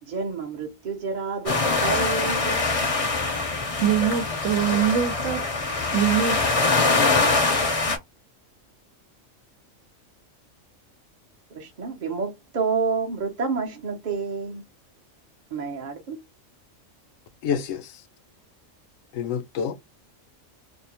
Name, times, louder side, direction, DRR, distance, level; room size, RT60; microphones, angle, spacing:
voice 1, 0.1-2.6 11.5-14.6 15.5-16.2, right 5 dB, 45° right, 0.6 m, -29 dB
sound 1, 1.5-8.0, left 3 dB, 40° left, 0.5 m, -23 dB
voice 2, 3.8-5.4 5.9-6.4, right 9 dB, 75° right, 1.0 m, -23 dB
voice 3, 17.4-18.0 19.1-19.7, left 7 dB, 75° left, 0.9 m, -28 dB
2.6 x 2.0 x 2.8 m
omnidirectional pair, 1.4 m